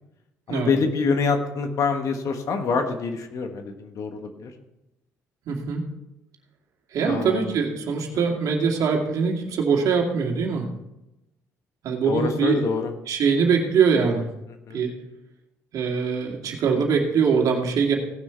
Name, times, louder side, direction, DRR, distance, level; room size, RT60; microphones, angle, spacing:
voice 1, 0.5-4.5 7.0-7.5 8.1-8.3 12.1-12.9 14.5-14.8, left 5 dB, 60° left, 6 dB, 1.6 m, -26 dB
voice 2, 5.4-5.8 6.9-10.7 11.8-12.6 13.1-14.3 14.7-14.9 15.7-17.9, right 5 dB, 65° right, 1 dB, 2.3 m, -22 dB
17.0 x 6.4 x 4.6 m, 0.93 s
cardioid pair, 85°, 6 cm